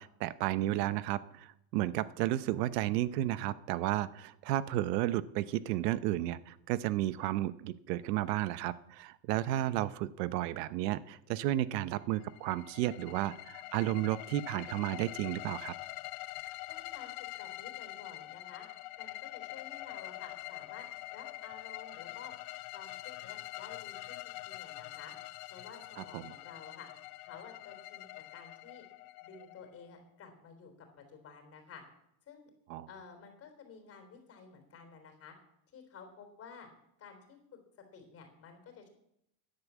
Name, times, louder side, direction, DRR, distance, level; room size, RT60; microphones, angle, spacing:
voice 1, 0.0-15.7 26.0-26.3 32.7-32.9, right 14 dB, 85° right, 15 dB, 0.9 m, -33 dB
sound 1, 12.1-29.9, left 19 dB, 50° left, 0.6 m, -45 dB
voice 2, 16.7-18.7 19.0-20.9 21.1-22.3 22.7-25.1 25.5-26.9 27.2-28.8 29.2-30.7 31.0-31.8 32.3-32.5 32.9-35.4 35.7-36.7 37.0-37.6 37.9-38.9, left 6 dB, 30° left, 5 dB, 3.7 m, -52 dB
12.0 x 10.5 x 8.3 m, 0.77 s
cardioid pair, 165°, 47 cm